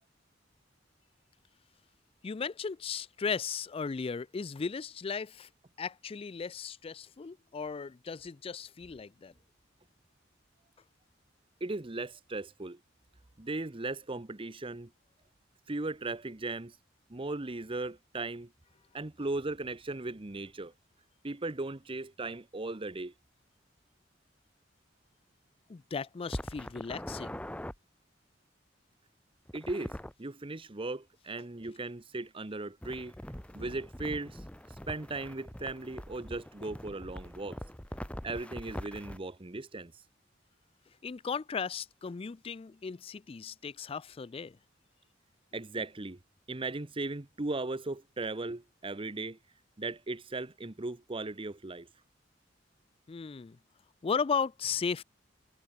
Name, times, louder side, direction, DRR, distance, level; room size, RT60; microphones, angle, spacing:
voice 1, 2.2-5.5 5.8-9.3 25.7-27.4 41.0-44.6 53.1-53.6 54.0-55.0, left 5 dB, 30° left, 0.4 m, -36 dB
voice 2, 11.6-12.8 13.4-14.9 15.7-16.8 17.1-18.5 18.9-20.7 21.2-23.1 29.5-33.1 33.5-37.6 38.2-40.0 45.5-46.2 46.5-49.4 49.8-51.9, right 2 dB, 30° right, 0.9 m, -37 dB
sound 1, 26.3-27.7 29.5-30.1 32.8-39.2, equal, 5° left, 1.0 m, -42 dB
head